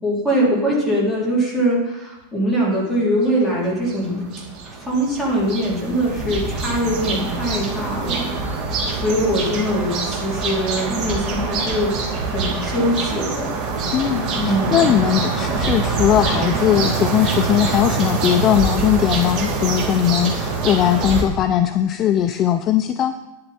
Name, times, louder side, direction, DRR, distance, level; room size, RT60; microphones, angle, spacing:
voice 1, 0.0-4.2 4.9-8.3 8.9-11.9 12.3-13.5 14.4-14.8, equal, ahead, -8 dB, 3.3 m, -22 dB
sound 1, 3.3-3.4 3.6-21.2, right 4 dB, 35° right, 2.5 m, -24 dB
voice 2, 13.9-23.2, left 10 dB, 25° left, 9 dB, 0.4 m, -19 dB
11.0 x 10.0 x 4.3 m, 1.0 s
supercardioid pair, 170°, 0 cm